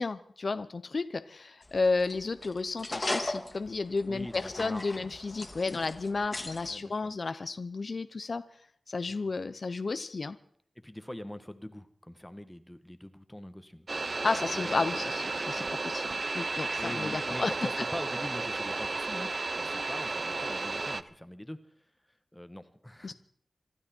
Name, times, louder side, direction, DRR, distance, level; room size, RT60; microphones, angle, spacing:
voice 1, 0.0-8.4 8.9-10.4 14.2-17.6 23.0-23.1, left 3 dB, 60° left, 12 dB, 0.7 m, -32 dB
sound 1, 1.6-6.7, left 2 dB, 30° left, 2.1 m, -38 dB
voice 2, 4.1-5.2 6.6-7.1 9.1-9.3 10.8-13.9 14.2-15.1 15.5-15.8 16.8-21.6 22.3-23.1, left 1 dB, 10° left, 10 dB, 1.3 m, -43 dB
sound 2, 13.9-21.0, right 3 dB, 50° right, 0.8 m, -33 dB
26.0 x 12.5 x 4.5 m, 0.62 s
wide cardioid pair, 70°, 0 cm